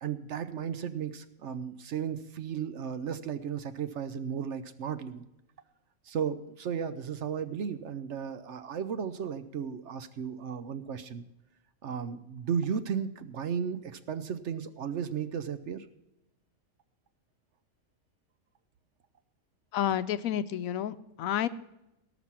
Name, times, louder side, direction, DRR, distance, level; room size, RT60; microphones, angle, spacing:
voice 1, 0.0-5.3 6.1-11.2 11.8-15.9, right 7 dB, 60° right, 12 dB, 0.9 m, -35 dB
voice 2, 19.7-21.5, left 10 dB, 75° left, 14 dB, 1.0 m, -30 dB
18.0 x 6.1 x 5.8 m, 0.91 s
omnidirectional pair, 1.5 m